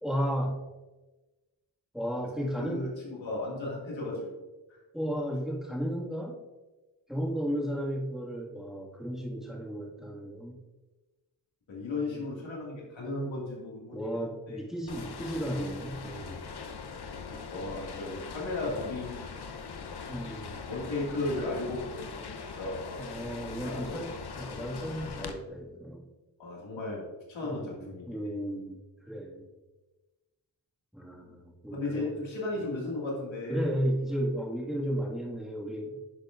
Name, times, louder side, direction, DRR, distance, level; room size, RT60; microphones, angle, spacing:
voice 1, 0.0-0.6 1.9-2.9 4.9-6.4 7.1-10.6 11.9-12.2 13.9-16.4 20.1-20.6 23.1-26.0 27.4-29.5 30.9-32.2 32.6-32.7 33.5-36.0, equal, ahead, -3 dB, 1.8 m, -34 dB
voice 2, 2.4-4.3 4.7-4.8 11.7-14.1 14.5-14.6 17.3-19.3 20.7-22.3 22.6-23.2 23.6-24.0 26.4-28.3 31.7-33.6, left 2 dB, 85° left, -3 dB, 2.2 m, -35 dB
sound 1, 14.9-25.3, left 5 dB, 60° left, 0.8 m, -41 dB
10.0 x 6.5 x 2.5 m, 1.1 s
cardioid pair, 55°, 45 cm